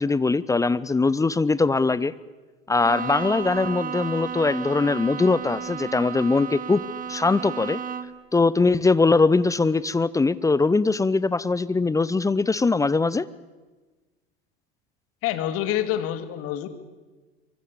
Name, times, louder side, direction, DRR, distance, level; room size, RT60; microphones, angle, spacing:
voice 1, 0.0-2.1 2.7-6.8 7.1-7.8 8.3-13.3, left 3 dB, 10° left, 18 dB, 0.7 m, -21 dB
Bowed string instrument, 2.8-8.3, right 7 dB, 30° right, 1.8 m, -33 dB
voice 2, 15.2-16.7, left 12 dB, 50° left, 10 dB, 2.5 m, -27 dB
24.0 x 24.0 x 7.0 m, 1.3 s
hypercardioid pair, 80°, 30 cm